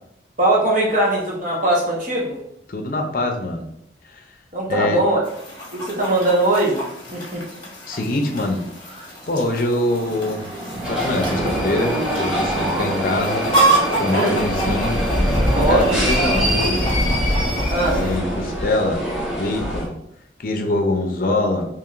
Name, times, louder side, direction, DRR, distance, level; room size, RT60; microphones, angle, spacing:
voice 1, 0.4-2.4 4.5-5.2 5.7-6.8 7.1-7.4 14.1-14.4 15.6-16.0 17.7-18.0, right 2 dB, 45° right, -3 dB, 1.2 m, -20 dB
voice 2, 2.7-3.6 4.0-4.2 4.7-5.0 7.9-8.6 9.3-10.5 10.8-13.5 14.0-15.0 15.7-16.9 17.8-19.0 19.4-19.9 20.4-21.7, left 2 dB, 50° left, 3 dB, 0.6 m, -23 dB
Chicken rooster, 5.2-18.2, right 2 dB, 25° left, 1.2 m, -28 dB
Mechanisms, 7.9-8.5 8.9-9.1 9.3-17.5, equal, 25° right, 0.7 m, -31 dB
sound 1, 10.8-19.8, equal, 5° right, 1.1 m, -23 dB
4.6 x 3.0 x 2.5 m, 0.78 s
head